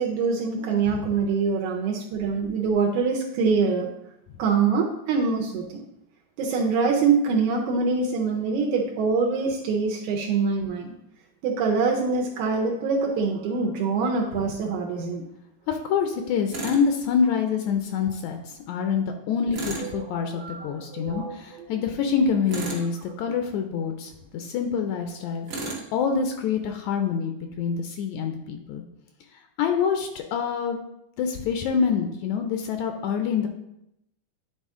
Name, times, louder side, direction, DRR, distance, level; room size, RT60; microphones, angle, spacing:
voice 1, 0.0-3.9 4.4-5.8 6.4-10.9 11.4-15.2 20.0-21.7, right 5 dB, 80° right, -1 dB, 2.1 m, -24 dB
voice 2, 15.7-25.5 25.9-28.8 29.6-30.8 31.2-33.5, left 6 dB, 80° left, 5 dB, 1.8 m, -26 dB
Tools, 16.5-16.8 19.5-19.9 22.5-22.9 25.5-25.9, right 2 dB, 55° right, 1.1 m, -32 dB
9.7 x 3.8 x 3.6 m, 0.82 s
omnidirectional pair, 3.5 m